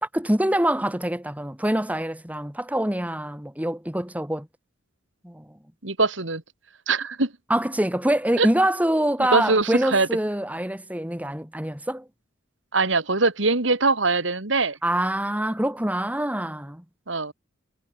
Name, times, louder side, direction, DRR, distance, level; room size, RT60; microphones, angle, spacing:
voice 1, 0.0-4.5 5.2-5.4 7.5-12.1 14.8-16.8, right 1 dB, 10° right, 2.2 m, -25 dB
voice 2, 5.8-6.4 6.9-7.3 8.4-8.5 9.3-10.1 12.7-14.8 17.1-17.3, right 3 dB, 65° right, 2.7 m, -22 dB
head